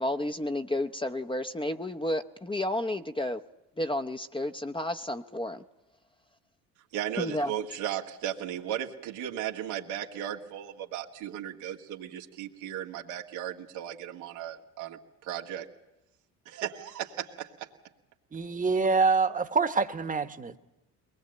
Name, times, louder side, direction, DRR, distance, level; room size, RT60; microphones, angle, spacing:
voice 1, 0.0-3.4 3.8-5.6 7.2-7.5, left 1 dB, 10° left, 7 dB, 0.8 m, -31 dB
voice 2, 6.9-15.7 16.5-17.7, right 10 dB, 80° right, 1 dB, 1.9 m, -36 dB
voice 3, 18.3-20.6, right 4 dB, 15° right, 8 dB, 1.2 m, -26 dB
22.5 x 19.5 x 7.8 m, 0.96 s
hypercardioid pair, 65°, 45 cm